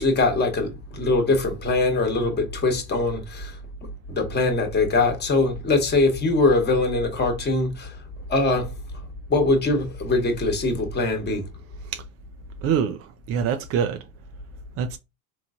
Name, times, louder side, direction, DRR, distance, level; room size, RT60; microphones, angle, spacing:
voice 1, 0.0-3.6 4.1-8.0 8.3-8.7 9.3-11.4, left 3 dB, 25° left, 1.2 m, -22 dB
voice 2, 12.6-14.0 14.8-15.0, right 7 dB, 35° right, 0.4 m, -25 dB
3.9 x 3.0 x 2.4 m
supercardioid pair, 100°, 43 cm